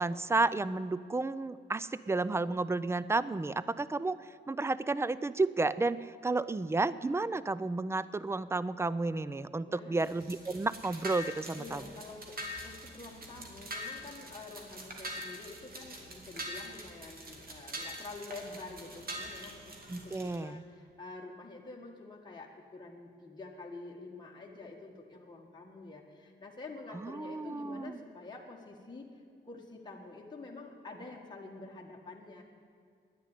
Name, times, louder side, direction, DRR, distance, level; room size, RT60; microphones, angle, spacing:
voice 1, 0.0-4.2 4.5-11.8 19.9-20.6 27.0-28.0, right 3 dB, 15° right, 17 dB, 0.4 m, -32 dB
voice 2, 9.7-10.0 11.6-12.4 12.6-29.0 29.4-32.4, left 3 dB, 25° left, -2 dB, 1.7 m, -47 dB
sound 1, 10.0-20.4, equal, 50° right, 2.4 m, -44 dB
10.0 x 9.8 x 10.0 m, 2.2 s
cardioid pair, 90°, 19 cm